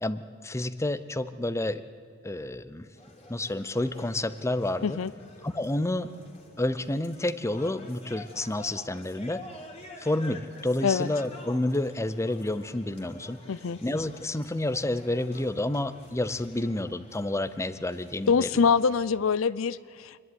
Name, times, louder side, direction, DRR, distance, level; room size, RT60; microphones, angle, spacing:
voice 1, 0.0-1.8 2.2-2.9 3.3-5.0 5.4-6.1 6.6-9.4 10.0-13.4 13.8-18.5, left 1 dB, 15° left, 13 dB, 0.7 m, -29 dB
sound 1, 3.0-19.0, left 2 dB, 30° left, 2.8 m, -49 dB
voice 2, 13.5-13.8 18.3-20.2, left 5 dB, 80° left, 17 dB, 0.5 m, -24 dB
26.5 x 11.0 x 9.5 m, 2.1 s
head